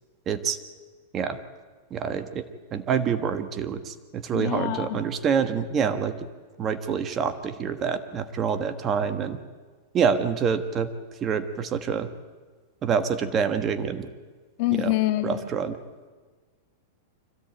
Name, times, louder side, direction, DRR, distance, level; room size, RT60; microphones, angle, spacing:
voice 1, 0.3-0.6 1.1-1.4 1.9-2.4 2.7-6.1 6.6-9.4 9.9-10.9 11.2-12.1 12.8-14.1 14.7-14.9 15.2-15.8, right 7 dB, 30° right, 9 dB, 1.4 m, -26 dB
voice 2, 4.3-5.0 14.6-15.4, left 16 dB, 55° left, 6 dB, 2.4 m, -25 dB
25.0 x 16.0 x 9.1 m, 1.4 s
hypercardioid pair, 130°, 0 cm